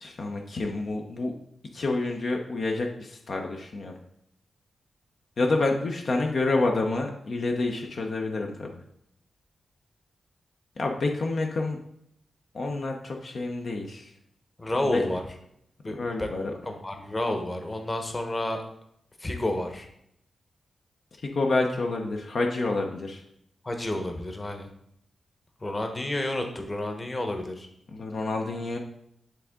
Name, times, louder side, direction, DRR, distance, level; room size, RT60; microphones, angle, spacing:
voice 1, 0.0-1.3 1.7-3.9 5.4-8.7 10.8-11.8 12.5-14.1 14.9-15.0 15.9-16.5 21.2-23.2 27.9-28.8, left 3 dB, 60° left, 2 dB, 0.8 m, -28 dB
voice 2, 14.6-15.2 15.8-16.3 16.7-18.6 19.2-19.9 23.6-24.7 25.6-27.7, left 1 dB, 25° left, 5 dB, 1.1 m, -30 dB
9.7 x 3.6 x 3.7 m, 0.74 s
wide cardioid pair, 95°, 0 cm